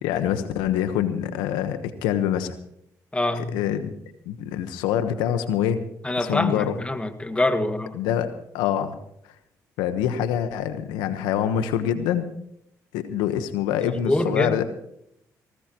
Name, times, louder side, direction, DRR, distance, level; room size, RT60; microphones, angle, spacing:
voice 1, 0.0-2.5 3.3-4.0 4.2-5.8 6.2-6.7 7.9-9.0 9.8-12.3 12.9-14.6, left 10 dB, 90° left, 10 dB, 1.2 m, -25 dB
voice 2, 3.1-3.5 6.0-8.0 14.0-14.6, left 1 dB, 15° left, 8 dB, 1.9 m, -24 dB
19.5 x 18.5 x 3.0 m, 0.73 s
supercardioid pair, 65°, 7 cm